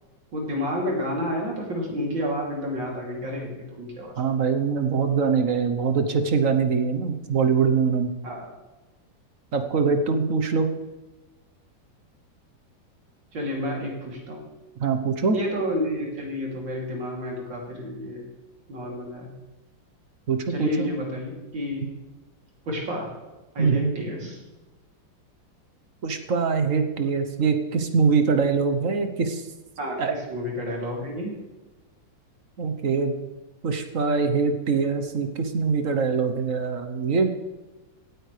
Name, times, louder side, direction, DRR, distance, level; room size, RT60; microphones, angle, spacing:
voice 1, 0.3-4.1 8.2-8.5 13.3-14.4 15.3-18.3 18.7-19.3 20.5-21.9 22.7-23.1 23.5-24.4 29.8-31.3, left 1 dB, 75° right, -2 dB, 3.7 m, -30 dB
voice 2, 4.2-8.1 9.5-10.7 14.8-15.3 20.3-20.9 23.6-23.9 26.0-29.4 30.0-30.1 32.6-33.1 33.6-37.3, right 5 dB, 50° right, 7 dB, 1.2 m, -23 dB
17.5 x 9.3 x 3.3 m, 1.1 s
omnidirectional pair, 2.1 m